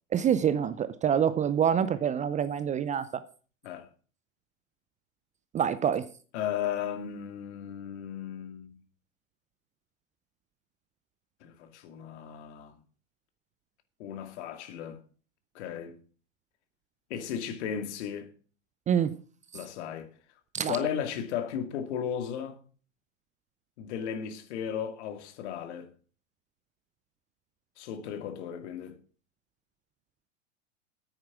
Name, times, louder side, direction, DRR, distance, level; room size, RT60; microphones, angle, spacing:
voice 1, 0.1-3.2 5.5-6.1 18.9-19.2 20.5-20.8, right 8 dB, 20° right, 0.5 m, -26 dB
voice 2, 6.3-8.8 11.4-12.8 14.0-15.0 15.5-16.0 17.1-18.3 19.5-20.1 20.7-22.6 23.8-25.9 27.8-29.0, left 9 dB, 60° left, 2.3 m, -35 dB
9.5 x 8.9 x 5.9 m
hypercardioid pair, 105°, 38 cm